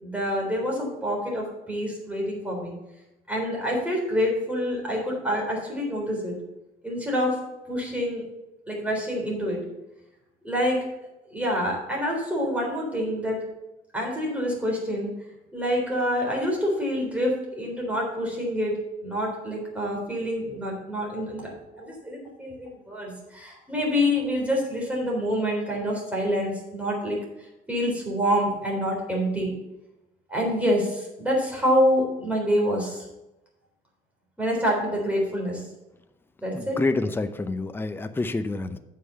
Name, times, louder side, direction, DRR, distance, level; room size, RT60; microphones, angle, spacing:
voice 1, 0.0-2.7 3.3-6.4 6.8-7.4 7.7-8.2 8.7-9.7 10.4-10.8 11.3-13.4 13.9-15.1 15.5-29.5 30.3-33.1 34.4-35.6 36.4-36.8, equal, 10° right, -2 dB, 3.7 m, -27 dB
voice 2, 36.5-38.8, left 3 dB, 15° left, 9 dB, 0.6 m, -28 dB
8.3 x 5.6 x 5.7 m, 0.95 s
cardioid pair, 110°, 17 cm